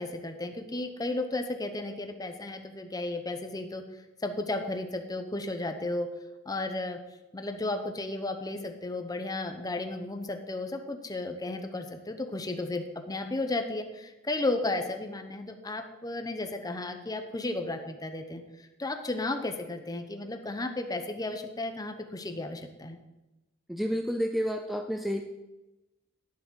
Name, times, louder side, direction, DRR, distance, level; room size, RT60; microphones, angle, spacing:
voice 1, 0.0-3.8 4.2-6.1 6.5-7.0 7.3-18.4 18.8-23.0, left 2 dB, 20° left, 6 dB, 0.8 m, -34 dB
voice 2, 23.7-25.2, equal, ahead, 4 dB, 0.5 m, -30 dB
9.8 x 7.2 x 6.3 m, 1.0 s
head